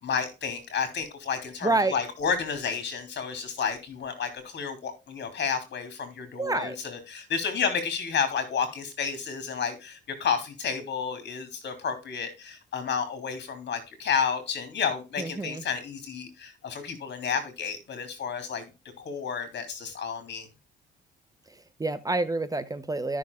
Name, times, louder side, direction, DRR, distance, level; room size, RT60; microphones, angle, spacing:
voice 1, 0.0-18.7 19.0-20.5, left 6 dB, 60° left, 9 dB, 3.3 m, -31 dB
voice 2, 1.6-2.0 6.4-6.8 15.2-15.6 21.5-23.2, right 2 dB, 20° right, 12 dB, 0.8 m, -28 dB
14.0 x 6.4 x 2.3 m, 0.27 s
cardioid pair, 90°, 20 cm